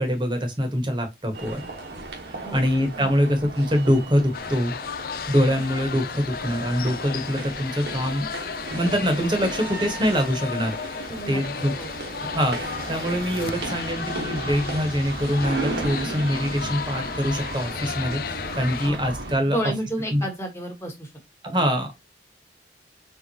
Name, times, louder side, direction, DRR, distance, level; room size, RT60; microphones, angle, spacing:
voice 1, 0.0-1.7 2.3-4.7 5.3-8.3 8.7-11.0 11.3-11.7 12.2-19.6 20.1-20.3 21.4-21.9, equal, 25° right, 1.1 m, -24 dB
sound 1, 1.3-19.4, right 2 dB, 70° right, 1.3 m, -35 dB
sound 2, 4.3-18.9, left 7 dB, 55° left, 0.3 m, -34 dB
voice 2, 11.1-11.9 18.8-19.0 19.5-21.1 21.6-21.7, right 1 dB, 15° left, 1.3 m, -31 dB
4.6 x 3.5 x 2.8 m
head